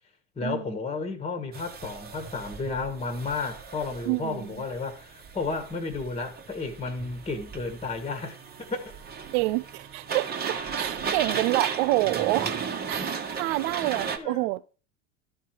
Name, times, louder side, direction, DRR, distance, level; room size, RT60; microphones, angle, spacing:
voice 1, 0.4-8.9 14.2-14.5, left 3 dB, 15° left, 1.5 m, -33 dB
sound 1, 1.5-14.2, right 6 dB, 25° right, 1.3 m, -35 dB
voice 2, 4.1-4.5 9.3-14.6, right 19 dB, 65° right, 0.5 m, -28 dB
12.0 x 4.4 x 4.7 m
hypercardioid pair, 90°, 36 cm